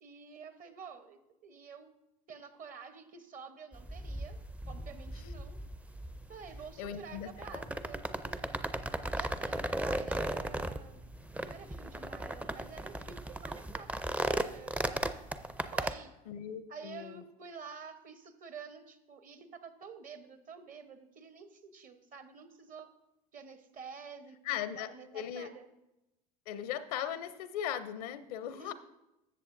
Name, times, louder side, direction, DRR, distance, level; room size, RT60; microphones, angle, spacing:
voice 1, 0.0-1.9 2.3-4.4 4.7-5.6 6.3-8.4 9.1-11.1 11.4-15.2 15.7-16.1 16.7-22.9 23.3-25.7 28.5-28.7, right 5 dB, 45° right, 10 dB, 1.0 m, -49 dB
sound 1, 3.7-15.9, right 1 dB, 5° right, 0.4 m, -37 dB
voice 2, 6.8-7.6 16.3-17.2 24.4-25.5 26.5-28.7, left 10 dB, 80° left, 13 dB, 0.6 m, -38 dB
13.5 x 7.5 x 2.6 m, 0.93 s
hypercardioid pair, 80°, 19 cm